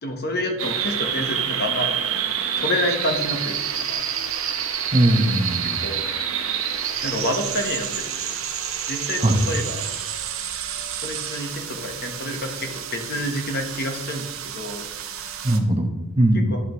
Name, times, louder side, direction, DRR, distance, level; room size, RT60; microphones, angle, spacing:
voice 1, 0.0-1.9 2.6-4.0 5.6-6.0 7.0-8.4 8.9-9.8 11.0-14.8 16.3-16.6, left 1 dB, 45° left, 4 dB, 1.1 m, -28 dB
sound 1, 0.6-15.6, right 8 dB, 65° right, 0.7 m, -28 dB
voice 2, 4.9-5.8 9.2-9.4 15.4-16.5, right 1 dB, 25° right, 3 dB, 0.9 m, -20 dB
11.0 x 5.8 x 3.1 m, 0.98 s
head